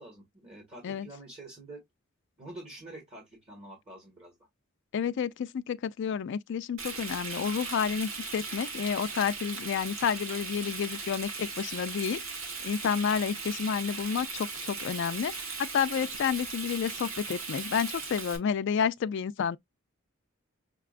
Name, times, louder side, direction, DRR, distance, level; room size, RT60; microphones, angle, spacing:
voice 1, 0.0-1.8 2.4-4.3, right 2 dB, 30° right, 1.5 m, -47 dB
voice 2, 4.9-12.2 12.6-19.6, left 7 dB, 60° left, 0.3 m, -30 dB
Frying (food), 6.8-18.4, right 4 dB, 80° right, 1.3 m, -38 dB
5.8 x 2.2 x 2.4 m
head